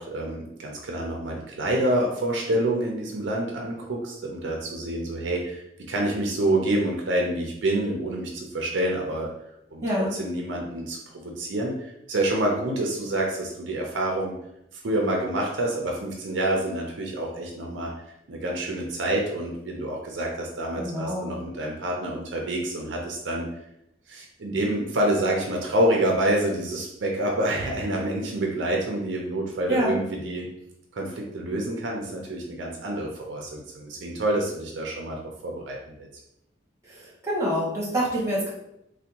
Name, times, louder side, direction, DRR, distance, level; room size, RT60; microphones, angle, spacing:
voice 1, 0.0-9.3 9.7-9.8 10.2-14.3 14.8-17.9 18.3-23.5 24.1-30.5 30.9-36.1, right 1 dB, 70° right, 0 dB, 0.5 m, -27 dB
voice 2, 9.8-10.1 20.8-21.3 29.7-30.0 36.8-38.5, equal, 15° right, -5 dB, 1.0 m, -26 dB
3.4 x 2.2 x 2.8 m, 0.79 s
head